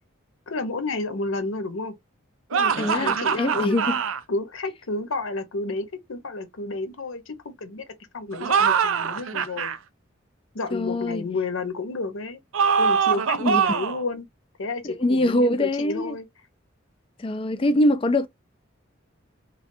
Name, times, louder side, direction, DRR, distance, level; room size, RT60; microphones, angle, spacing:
voice 1, 0.5-2.0 2.5-3.8 4.3-7.9 8.1-9.7 10.5-12.4 12.8-14.3 14.6-16.3, left 3 dB, 80° left, 0.8 m, -31 dB
sound 1, 2.5-4.2 8.3-9.8 12.5-14.0, right 6 dB, 85° right, 0.4 m, -23 dB
voice 2, 2.8-4.0 10.7-11.2 13.4-13.6 14.8-16.2 17.2-18.3, left 1 dB, 25° left, 0.4 m, -23 dB
3.2 x 2.2 x 2.6 m
head